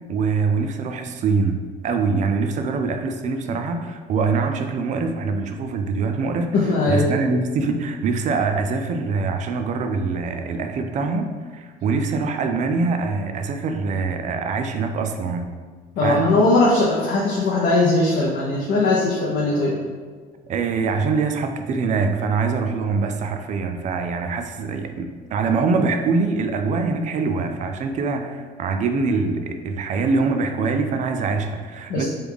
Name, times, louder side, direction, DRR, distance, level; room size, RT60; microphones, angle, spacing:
voice 1, 0.1-6.5 6.9-15.5 16.0-16.4 20.4-32.1, right 4 dB, 45° right, 6 dB, 0.4 m, -24 dB
voice 2, 6.5-7.1 16.0-19.8 31.9-32.1, left 2 dB, 70° left, -5 dB, 0.6 m, -19 dB
3.2 x 2.3 x 3.4 m, 1.5 s
cardioid pair, 110°, 17 cm